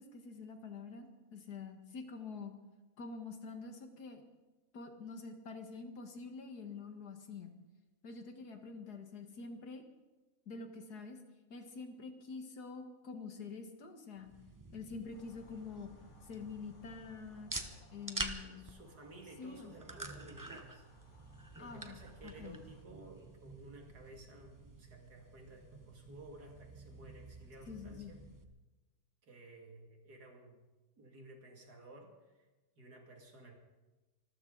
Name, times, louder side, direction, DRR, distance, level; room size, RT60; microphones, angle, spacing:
voice 1, 0.0-2.6 3.0-4.2 4.7-7.5 8.0-9.8 10.5-11.2 11.5-14.3 14.7-15.9 16.2-17.5 17.9-18.6 19.4-19.8 21.6-22.6 27.7-28.1, left 4 dB, 80° left, 6 dB, 2.2 m, -47 dB
sound 1, 14.2-28.4, right 2 dB, 15° right, 1.0 m, -48 dB
sound 2, 15.1-22.8, left 3 dB, 50° left, 2.1 m, -63 dB
voice 2, 18.4-20.9 21.5-28.2 29.2-30.6 31.0-32.5 32.8-33.5, right 2 dB, 85° right, 2 dB, 3.1 m, -55 dB
25.5 x 14.0 x 4.0 m, 1.1 s
omnidirectional pair, 1.7 m